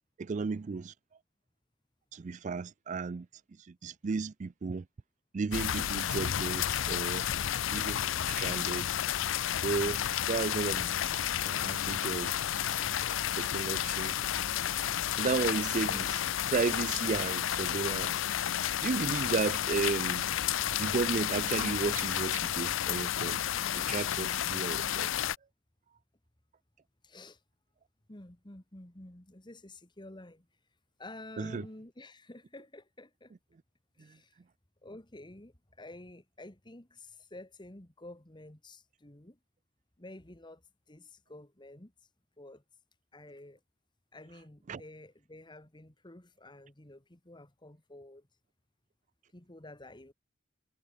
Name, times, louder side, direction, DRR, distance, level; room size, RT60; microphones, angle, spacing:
voice 1, 0.2-0.9 2.1-3.3 3.8-4.8 5.3-7.3 7.7-8.9 9.6-10.0 10.3-10.9 11.5-12.3 13.4-14.1 15.2-16.2 16.5-18.1 18.8-20.2 20.8-23.4 23.7-25.1 31.4-31.6 44.7-44.8, right 4 dB, 35° right, 0.4 m, -33 dB
sound 1, 5.5-25.4, left 10 dB, 65° left, 0.5 m, -31 dB
voice 2, 27.0-27.4 28.1-30.5 31.0-33.3 34.0-34.3 34.8-39.4 40.0-40.6 40.9-41.9 42.4-42.6 43.1-43.6 44.1-48.3 49.3-50.1, left 1 dB, 20° left, 1.8 m, -50 dB
head